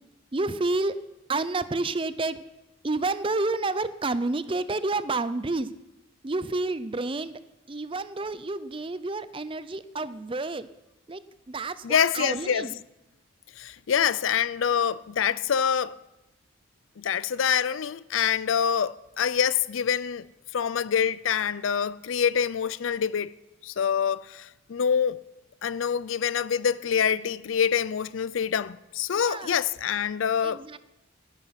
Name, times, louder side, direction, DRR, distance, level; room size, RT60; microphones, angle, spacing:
voice 1, 0.3-1.0 1.3-2.4 2.8-5.7 6.2-7.4 7.7-10.7 11.1-11.2 11.5-12.7 29.2-29.5 30.4-30.8, right 3 dB, 25° right, 0.5 m, -29 dB
voice 2, 11.8-12.7 13.6-16.0 17.0-20.3 20.5-23.3 23.6-25.2 25.6-30.6, left 7 dB, 80° left, 0.5 m, -26 dB
17.5 x 9.8 x 5.9 m
head